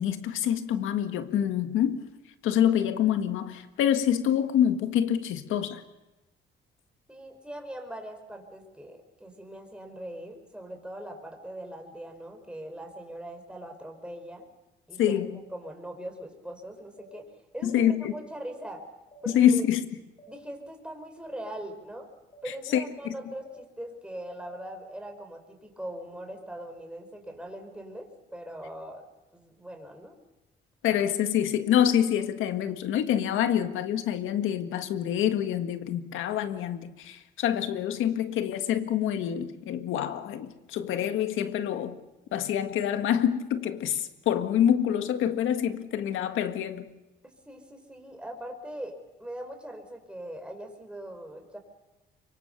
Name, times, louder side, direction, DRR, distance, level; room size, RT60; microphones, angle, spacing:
voice 1, 0.0-2.1 2.4-5.8 15.0-15.4 17.6-18.1 19.3-19.9 22.5-23.1 30.8-42.0 42.3-46.9, left 10 dB, 85° left, 9 dB, 1.8 m, -26 dB
voice 2, 7.1-14.4 14.9-15.2 15.5-17.3 17.5-18.8 19.2-19.6 20.3-22.1 22.4-29.1 29.3-30.1 47.5-51.6, right 1 dB, 5° right, 3 dB, 5.3 m, -41 dB
sound 1, 17.0-17.1 18.0-18.2 19.1-19.3 20.2-20.3 21.3-21.4 22.3-22.5 23.4-23.6 24.5-24.6, equal, 25° left, 3.7 m, -52 dB
24.5 x 23.5 x 6.9 m, 1.0 s
cardioid pair, 90°, 20 cm